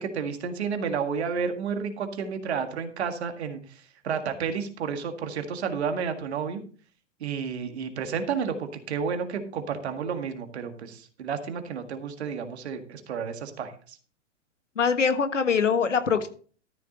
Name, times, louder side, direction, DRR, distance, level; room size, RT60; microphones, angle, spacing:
voice 1, 0.0-6.6 7.2-14.0, right 6 dB, 60° right, 7 dB, 1.9 m, -31 dB
voice 2, 14.8-16.3, left 6 dB, 80° left, 10 dB, 1.5 m, -23 dB
13.5 x 6.8 x 4.0 m, 0.42 s
figure-of-eight pair, 105°, 37 cm